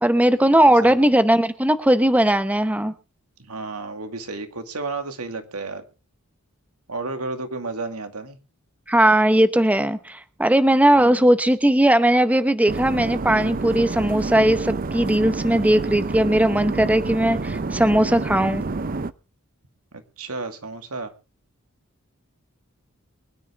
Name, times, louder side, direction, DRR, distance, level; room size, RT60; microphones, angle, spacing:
voice 1, 0.0-2.9 8.9-18.6, right 1 dB, 5° right, 11 dB, 0.8 m, -18 dB
voice 2, 0.6-1.0 3.4-5.8 6.9-8.4 10.9-11.3 19.9-21.1, right 3 dB, 85° right, 7 dB, 2.3 m, -32 dB
sound 1, 12.7-19.1, right 3 dB, 40° right, 0.6 m, -28 dB
23.5 x 10.0 x 3.6 m, 0.33 s
head